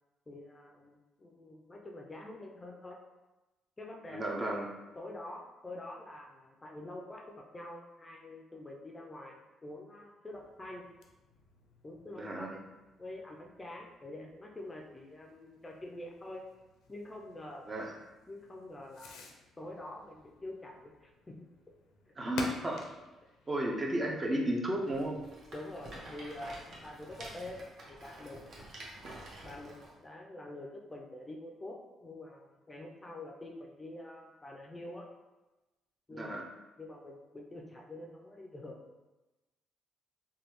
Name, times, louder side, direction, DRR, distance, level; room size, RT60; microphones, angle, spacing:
voice 1, 0.3-3.0 3.8-4.4 5.0-10.9 11.8-12.6 13.0-16.4 16.9-17.7 18.3-19.3 19.6-21.4 25.5-28.7 29.4-35.1 36.1-36.4 36.8-38.8, left 1 dB, 20° left, 0 dB, 0.4 m, -46 dB
voice 2, 4.1-4.7 12.1-12.6 17.7-17.9 22.2-22.9 23.5-25.2 36.1-36.4, right 1 dB, 25° right, -1 dB, 0.6 m, -33 dB
Fireworks, 10.3-24.9, left 3 dB, 80° left, 0.4 m, -51 dB
Rattle, 24.8-29.9, right 1 dB, 60° right, 0.8 m, -49 dB
3.2 x 2.2 x 3.0 m, 1.1 s
cardioid pair, 80°, 0 cm